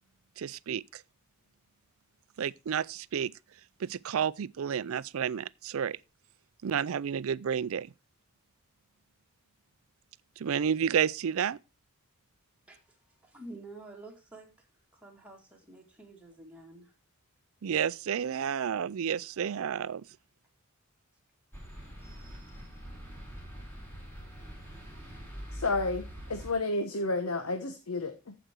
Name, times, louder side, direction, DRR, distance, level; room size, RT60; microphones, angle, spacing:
voice 1, 0.4-1.0 2.4-3.3 3.8-6.0 6.6-7.9 10.4-11.6 17.6-20.0, right 8 dB, 65° right, 0.4 m, -31 dB
voice 2, 13.2-14.7 14.9-16.9, right 2 dB, 5° right, 2.2 m, -49 dB
sound 1, 21.5-26.5, equal, 10° left, 4.0 m, -44 dB
voice 3, 25.5-28.4, left 2 dB, 75° left, 1.1 m, -31 dB
14.5 x 5.0 x 4.5 m
head